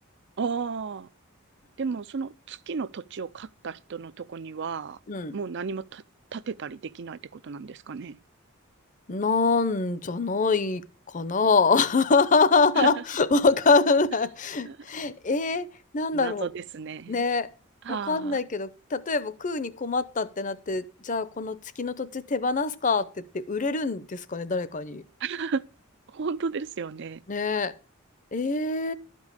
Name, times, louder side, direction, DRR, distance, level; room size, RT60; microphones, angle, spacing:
voice 1, 0.4-1.1 1.8-5.0 5.3-6.0 6.3-8.2 12.8-13.0 14.6-14.8 16.1-17.2 17.8-18.4 25.2-25.6 26.1-27.2, right 5 dB, 55° right, 0.4 m, -33 dB
voice 2, 9.1-15.7 15.9-16.5 17.1-17.5 17.9-25.0 27.3-27.7 28.3-28.9, left 4 dB, 35° left, 0.7 m, -25 dB
12.5 x 5.3 x 6.4 m
head